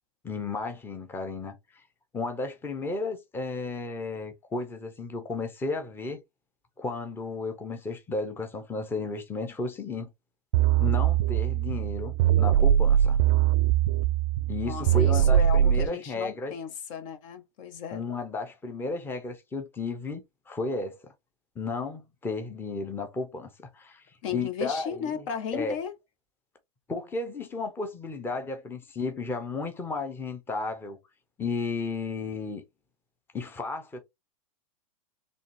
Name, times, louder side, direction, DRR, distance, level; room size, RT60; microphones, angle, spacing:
voice 1, 0.2-1.8 2.1-6.2 6.8-10.1 10.8-13.2 14.5-16.6 17.9-21.1 21.6-25.1 25.5-25.8 26.9-31.0 31.4-32.6 33.3-34.0, left 3 dB, 10° left, 0.8 m, -33 dB
sound 1, 10.5-15.9, right 11 dB, 50° right, 0.4 m, -22 dB
voice 2, 14.7-18.0 24.2-25.9, left 7 dB, 55° left, 0.9 m, -35 dB
3.9 x 3.1 x 3.1 m
hypercardioid pair, 130°, 19 cm